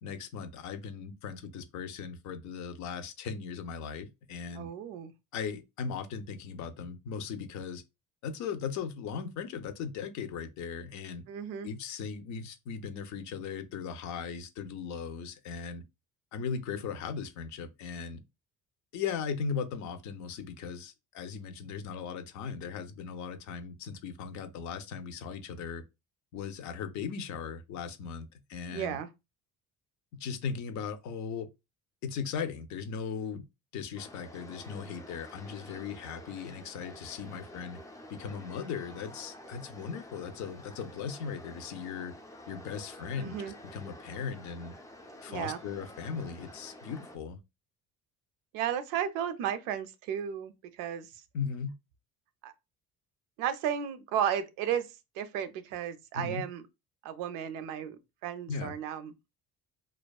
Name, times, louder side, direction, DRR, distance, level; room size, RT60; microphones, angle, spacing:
voice 1, 0.0-4.7 5.3-7.8 8.2-11.2 11.6-15.8 16.3-18.2 18.9-25.8 26.3-29.0 30.2-31.5 32.0-33.5 33.7-37.8 38.1-42.1 42.5-43.4 43.7-44.7 45.2-47.4 51.3-51.7 56.1-56.4 58.5-58.7, left 6 dB, 65° left, 0.5 m, -38 dB
voice 2, 4.6-5.1 11.3-11.7 28.7-29.1 43.2-43.5 45.3-45.6 48.5-51.2 52.4-52.5 53.4-54.9 55.1-56.6 57.0-59.3, right 9 dB, 90° right, 0.5 m, -34 dB
sound 1, 34.0-47.2, left 1 dB, 10° left, 0.3 m, -49 dB
2.4 x 2.3 x 2.2 m
cardioid pair, 100°, 31 cm